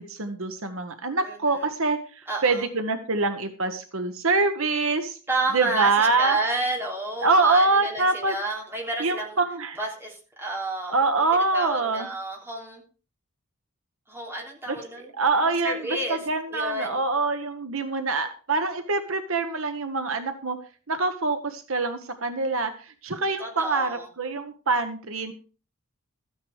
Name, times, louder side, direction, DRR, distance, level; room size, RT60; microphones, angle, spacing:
voice 1, 0.0-2.0 2.4-5.2 5.5-6.4 7.2-8.3 9.0-9.8 10.9-12.1 15.2-15.8 16.1-20.6 20.9-22.7 23.0-25.3, right 3 dB, 65° right, 8 dB, 1.2 m, -24 dB
voice 2, 1.2-1.7 2.3-2.7 5.3-9.4 9.8-12.8 14.1-15.1 15.4-17.0 23.4-24.1, right 2 dB, 10° right, -1 dB, 3.6 m, -31 dB
13.5 x 9.5 x 4.8 m, 0.37 s
head